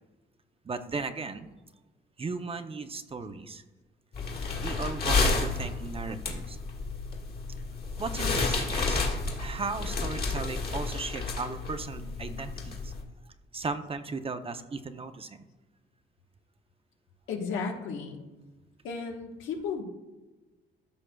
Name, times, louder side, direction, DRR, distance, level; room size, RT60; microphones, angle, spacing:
voice 1, 0.6-1.5 2.2-3.6 4.6-6.6 8.0-9.0 9.4-12.9 13.5-15.4, right 4 dB, 30° right, 8 dB, 0.6 m, -36 dB
sound 1, 4.1-13.0, left 3 dB, 50° left, 1.9 m, -31 dB
voice 2, 17.3-18.2 18.8-19.8, left 5 dB, 90° left, 2 dB, 1.2 m, -34 dB
14.0 x 6.0 x 2.3 m, 1.1 s
cardioid pair, 90°, 20 cm